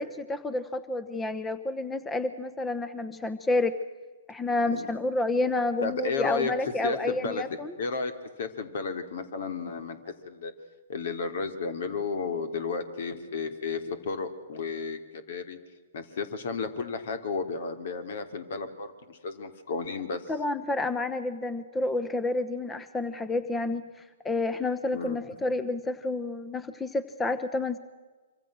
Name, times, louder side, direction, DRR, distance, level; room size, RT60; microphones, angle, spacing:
voice 1, 0.0-3.8 4.3-7.7 20.3-23.8 24.2-27.8, left 2 dB, 10° left, 13 dB, 1.1 m, -29 dB
voice 2, 5.8-6.5 6.8-8.1 8.4-10.5 10.9-15.6 15.9-20.2 24.9-25.2, left 4 dB, 60° left, 9 dB, 3.1 m, -33 dB
25.5 x 25.5 x 6.4 m, 1.3 s
hypercardioid pair, 125°, 0 cm